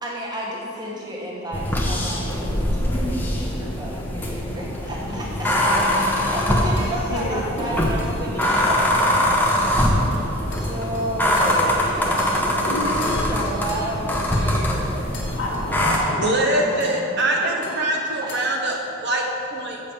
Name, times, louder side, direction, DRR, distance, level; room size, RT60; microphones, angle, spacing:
voice 1, 0.0-5.6 6.1-15.1 18.2-18.4, right 1 dB, 20° right, -4 dB, 1.3 m, -32 dB
sound 1, 1.5-16.0, left 1 dB, 10° left, 0.9 m, -22 dB
sound 2, 5.2-11.9 12.2-16.5 16.8-17.3 17.6-18.9, left 3 dB, 55° left, 1.9 m, -43 dB
voice 2, 5.4-6.3 6.7-6.8 7.1-7.5 12.6-12.9 15.2-18.0, left 1 dB, 75° left, -8 dB, 1.4 m, -30 dB
voice 3, 15.7-19.8, right 1 dB, 55° right, 0 dB, 1.0 m, -24 dB
7.4 x 5.2 x 7.1 m, 2.7 s
head